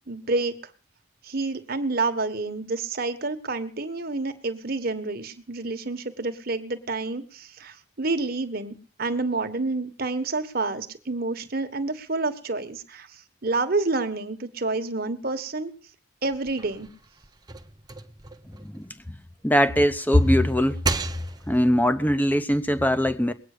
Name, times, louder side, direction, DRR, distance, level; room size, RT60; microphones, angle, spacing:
voice 1, 0.1-0.7 1.2-15.7 16.2-16.9, right 3 dB, 50° right, 1.4 m, -29 dB
sound 1, 16.3-19.5 19.9-21.7, right 3 dB, 20° right, 1.0 m, -35 dB
voice 2, 19.4-20.8 21.5-23.3, equal, 10° left, 0.9 m, -21 dB
21.0 x 9.0 x 6.7 m
head